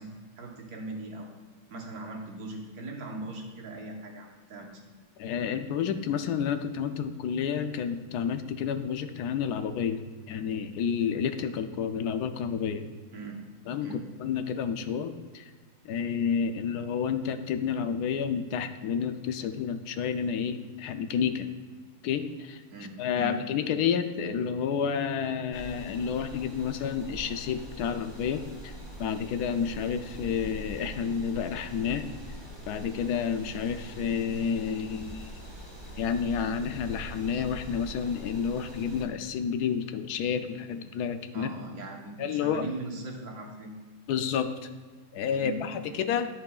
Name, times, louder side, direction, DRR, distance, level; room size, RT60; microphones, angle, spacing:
voice 1, 0.0-1.3 1.7-4.9 13.1-13.4 13.8-14.0 22.7-23.4 41.3-43.8 45.3-46.1, right 2 dB, 65° right, 1 dB, 1.5 m, -40 dB
voice 2, 5.2-10.0 10.3-12.9 13.7-13.9 14.2-15.4 15.9-21.5 22.0-22.6 23.0-28.7 29.0-32.1 32.7-35.3 36.0-41.5 42.2-42.6 44.1-44.5 45.1-46.3, left 7 dB, 75° left, 9 dB, 1.1 m, -30 dB
sound 1, 25.5-39.1, equal, 15° right, 1.5 m, -43 dB
10.5 x 8.5 x 2.3 m, 1.4 s
omnidirectional pair, 1.7 m